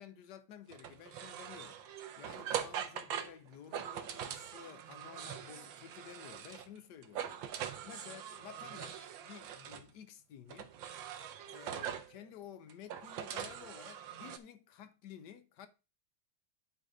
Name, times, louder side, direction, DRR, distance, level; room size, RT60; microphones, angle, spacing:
voice 1, 0.0-1.8 2.2-7.3 7.8-10.7 11.5-15.7, left 9 dB, 60° left, 1.3 m, -52 dB
sound 1, 0.7-6.8 7.0-9.9 10.5-12.1 12.7-14.4, right 9 dB, 70° right, 1.5 m, -42 dB
9.9 x 4.0 x 4.9 m
omnidirectional pair, 2.3 m